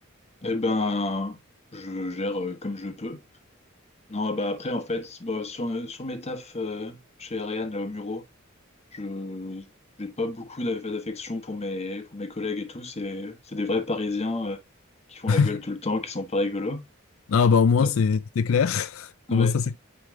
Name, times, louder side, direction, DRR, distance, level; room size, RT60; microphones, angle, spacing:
voice 1, 0.4-1.4 1.7-3.2 4.1-8.2 8.9-9.6 10.0-14.6 15.1-16.8 17.8-17.9 19.3-19.8, left 2 dB, 30° left, 1.2 m, -30 dB
voice 2, 17.3-19.8, left 5 dB, 80° left, 0.4 m, -21 dB
9.2 x 3.4 x 3.6 m
head